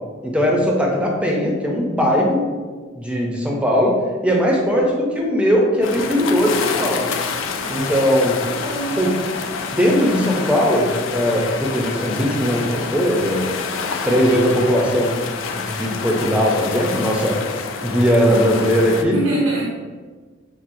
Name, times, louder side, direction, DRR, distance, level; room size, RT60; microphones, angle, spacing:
voice 1, 0.2-2.4 3.0-3.9 4.2-7.1 7.7-8.4 9.0-9.1 9.7-13.5 14.0-15.1 15.5-17.4 17.8-19.2, equal, 5° right, -1 dB, 0.5 m, -19 dB
sound 1, 5.8-19.0, left 5 dB, 70° left, 0.3 m, -28 dB
voice 2, 7.6-8.1 8.4-9.0 19.0-19.7, right 2 dB, 75° right, -3 dB, 0.5 m, -25 dB
5.8 x 2.0 x 2.6 m, 1.4 s
head